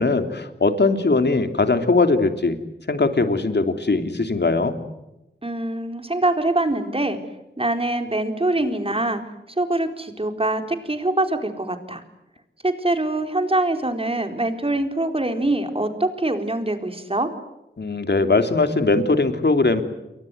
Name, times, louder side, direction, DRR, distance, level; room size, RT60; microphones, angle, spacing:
voice 1, 0.0-2.6 2.9-4.8 17.8-19.8, left 3 dB, 60° left, 7 dB, 3.2 m, -20 dB
voice 2, 5.4-7.2 7.6-9.2 9.6-12.0 12.6-17.3, right 2 dB, 30° right, 6 dB, 4.1 m, -24 dB
29.0 x 23.5 x 8.0 m, 0.94 s
wide cardioid pair, 70°, 20 cm